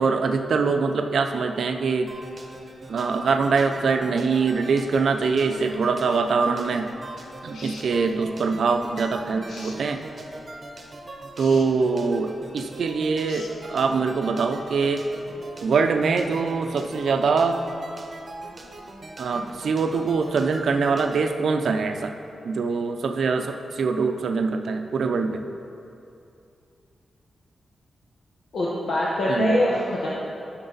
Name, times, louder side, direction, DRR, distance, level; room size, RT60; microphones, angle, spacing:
voice 1, 0.0-2.1 2.9-6.9 7.4-10.0 11.4-15.0 15.6-17.6 19.2-22.1 22.4-25.4 29.3-29.6, right 4 dB, 65° right, 6 dB, 0.5 m, -23 dB
sound 1, 2.1-21.3, right 1 dB, 30° right, 0.8 m, -41 dB
sound 2, 7.5-7.9 9.5-9.8 11.3-11.7 13.2-13.5, left 4 dB, 90° left, 0.8 m, -43 dB
voice 2, 28.5-30.1, left 1 dB, 70° left, -7 dB, 1.2 m, -23 dB
12.0 x 6.0 x 4.0 m, 2.6 s
wide cardioid pair, 165°, 0 cm